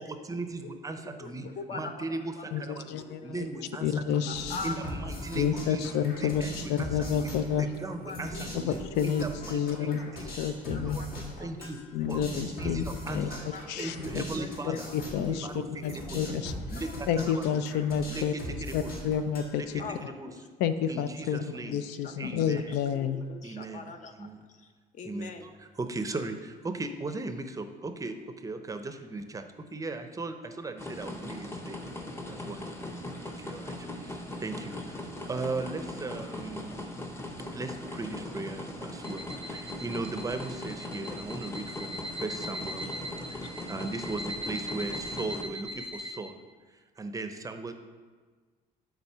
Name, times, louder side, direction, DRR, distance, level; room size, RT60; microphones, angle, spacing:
voice 1, 0.0-3.0 3.2-4.3 4.6-5.9 6.2-8.8 9.0-10.5 10.7-11.8 12.1-13.4 13.8-14.9 15.2-15.7 15.9-16.3 16.7-16.9 17.2-17.6 18.1-18.9 19.5-19.7 20.2-20.3 20.9-21.8 22.2-22.7 23.4-23.8 24.2-24.4 25.0-25.3 25.8-29.4 29.7-31.8 32.3-32.6 33.2-35.0 35.3-36.9 37.5-42.9 43.3-46.4 47.0-47.7, right 3 dB, 20° right, 8 dB, 0.5 m, -38 dB
voice 2, 1.2-5.4 7.2-7.3 7.8-9.1 9.5-11.7 12.0-12.1 13.5-15.4 16.4-16.5 17.0-17.4 19.8-20.4 22.0-25.6, left 4 dB, 45° left, 7 dB, 0.7 m, -44 dB
voice 3, 2.5-3.5 3.8-4.5 5.3-7.7 8.6-9.2 9.5-10.0 10.4-11.0 11.9-12.8 13.1-13.3 13.7-14.2 14.6-15.5 15.8-16.5 17.1-18.3 18.7-19.8 20.6-23.2, left 8 dB, 85° left, 11 dB, 0.4 m, -29 dB
sound 1, 4.3-19.8, equal, 60° left, 1.8 m, -40 dB
sound 2, 30.8-45.4, left 1 dB, 15° left, 0.7 m, -40 dB
sound 3, 39.0-46.1, equal, 30° left, 1.4 m, -40 dB
7.1 x 4.0 x 5.5 m, 1.5 s
cardioid pair, 110°, 17 cm